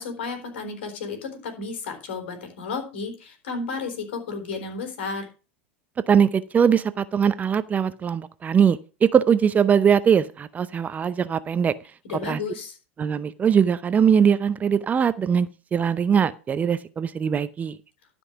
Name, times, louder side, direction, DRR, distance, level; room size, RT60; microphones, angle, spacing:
voice 1, 0.0-5.3 12.0-12.8, left 4 dB, 70° left, 5 dB, 3.9 m, -32 dB
voice 2, 6.1-11.7 12.3-12.4 13.0-17.8, right 7 dB, 25° right, 15 dB, 0.6 m, -21 dB
12.5 x 5.4 x 5.8 m, 0.33 s
hypercardioid pair, 90°, 6 cm